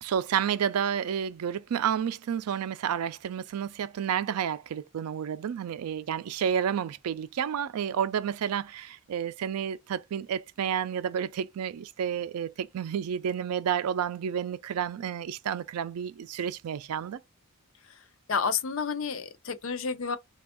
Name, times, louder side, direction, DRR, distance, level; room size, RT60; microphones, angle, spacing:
voice 1, 0.0-17.2, right 8 dB, 90° right, 0.4 m, -30 dB
voice 2, 18.3-20.2, left 5 dB, 60° left, 0.5 m, -30 dB
3.4 x 2.3 x 3.4 m
head